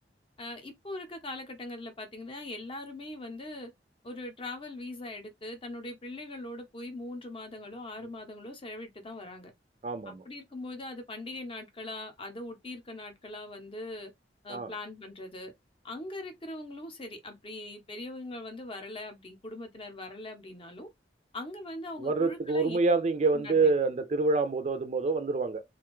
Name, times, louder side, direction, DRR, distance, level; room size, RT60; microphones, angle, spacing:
voice 1, 0.4-3.7 4.0-9.5 10.0-14.1 14.4-15.5 15.8-20.9 21.3-22.8 23.3-23.7, left 2 dB, 30° left, 0.7 m, -41 dB
voice 2, 9.8-10.2 14.5-14.7 22.0-25.6, right 3 dB, 40° right, 0.4 m, -27 dB
2.5 x 2.3 x 3.0 m
head